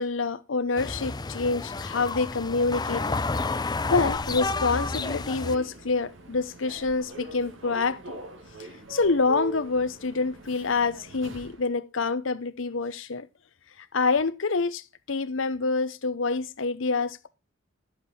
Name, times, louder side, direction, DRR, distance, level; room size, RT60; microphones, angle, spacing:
voice 1, 0.0-3.2 3.9-8.2 8.9-13.3 13.9-17.3, left 4 dB, 75° left, 0.9 m, -27 dB
sound 1, 0.8-5.6, left 3 dB, 20° left, 0.5 m, -30 dB
Human voice / Subway metro underground, 3.7-11.7, right 2 dB, 70° right, 2.3 m, -43 dB
11.5 x 8.1 x 4.4 m
head